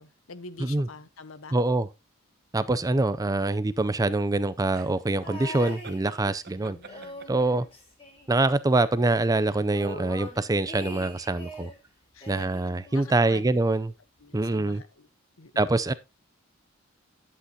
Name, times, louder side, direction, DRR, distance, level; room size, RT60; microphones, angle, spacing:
voice 1, 0.0-1.6 2.7-3.0 6.6-7.2 12.1-12.5 12.9-13.4 14.2-15.1 15.4-15.6, left 3 dB, 80° left, 0.9 m, -46 dB
voice 2, 1.5-1.9 2.5-6.8 7.3-7.7 8.3-11.7 12.3-13.9 14.3-14.8 15.6-15.9, right 2 dB, 15° right, 0.4 m, -25 dB
sound 1, 4.7-7.6, right 4 dB, 55° right, 0.9 m, -45 dB
sound 2, 5.2-6.5 6.8-8.7 9.0-9.1 9.4-11.8 12.2-13.5 14.3-14.4, equal, 30° left, 3.7 m, -42 dB
11.0 x 7.9 x 2.8 m
head